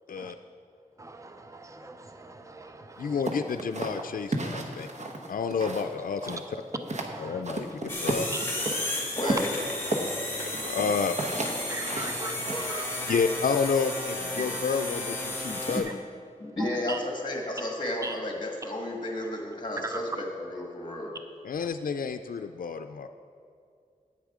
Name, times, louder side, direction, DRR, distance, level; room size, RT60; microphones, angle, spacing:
voice 1, 1.0-3.2 7.1-7.4 8.2-8.4 9.2-9.3 11.7-13.3 14.4-14.6 15.5-15.9 16.6-17.0 18.0-18.2 19.8-20.0 21.6-21.7, right 2 dB, 20° right, 7 dB, 0.6 m, -38 dB
voice 2, 3.0-4.9 5.3-6.4 7.2-8.4 10.6-11.2 13.1-15.9 21.4-23.1, left 5 dB, 75° left, 8 dB, 0.4 m, -30 dB
sound 1, 3.2-5.9 6.2-7.1 7.4-8.8 9.2-13.1, right 2 dB, 55° right, 1.1 m, -33 dB
sound 2, 7.9-15.8, left 1 dB, 15° left, 2.4 m, -33 dB
voice 3, 9.2-9.5 14.4-14.8 16.4-21.1, left 1 dB, 30° left, 0 dB, 1.6 m, -33 dB
10.0 x 8.7 x 4.9 m, 2.3 s
wide cardioid pair, 70°, 14 cm